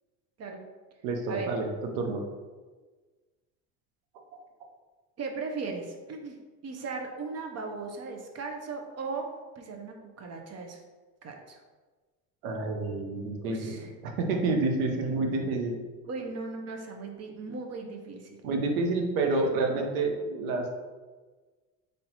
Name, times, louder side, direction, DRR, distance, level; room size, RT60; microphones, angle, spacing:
voice 1, 1.0-1.7 2.0-2.2 4.3-4.4 12.4-13.7 14.0-15.8 18.4-20.7, right 3 dB, 80° right, 3 dB, 0.8 m, -28 dB
voice 2, 5.2-6.4 6.6-9.3 9.6-10.8 11.2-11.6 13.4-13.9 16.0-18.4 19.3-19.7, right 4 dB, 35° right, 3 dB, 0.7 m, -37 dB
3.9 x 3.4 x 2.8 m, 1.3 s
hypercardioid pair, 80°, 42 cm